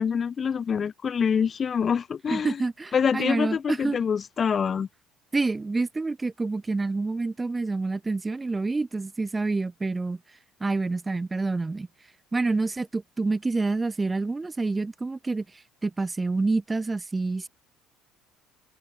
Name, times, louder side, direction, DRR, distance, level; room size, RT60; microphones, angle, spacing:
voice 1, 0.0-2.6 2.9-4.9, left 7 dB, 40° left, 0.8 m, -25 dB
voice 2, 2.3-4.0 5.3-10.2 10.6-11.9 12.3-15.4 15.8-17.5, right 3 dB, 20° right, 2.6 m, -27 dB
supercardioid pair, 75°, 0 cm